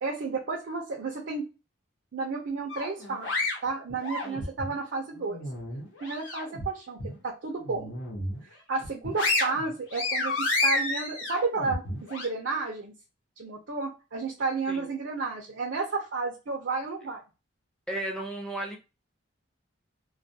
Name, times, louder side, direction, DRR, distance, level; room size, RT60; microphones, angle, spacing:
voice 1, 0.0-1.4 2.1-3.3 3.6-5.4 6.0-7.9 8.7-11.8 12.1-12.9 13.4-17.2, right 4 dB, 60° right, 0 dB, 0.5 m, -32 dB
sound 1, 2.7-4.7 5.2-6.6 7.0-7.2 7.6-8.4 8.8-12.3, left 2 dB, 75° left, 0.9 m, -30 dB
voice 2, 17.9-18.8, right 1 dB, 5° left, -1 dB, 0.6 m, -35 dB
2.3 x 2.2 x 2.6 m, 0.30 s
head